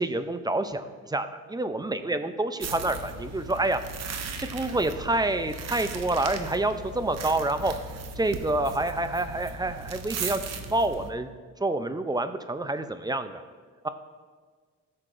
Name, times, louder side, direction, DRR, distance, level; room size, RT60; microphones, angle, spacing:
voice 1, 0.0-3.8 4.5-7.7 8.2-11.3 11.6-13.4 13.8-13.9, right 2 dB, 15° right, 10 dB, 0.4 m, -28 dB
sound 1, 2.6-11.1, right 4 dB, 60° right, 0.8 m, -37 dB
13.5 x 6.6 x 2.5 m, 1.5 s
cardioid pair, 90°, 30 cm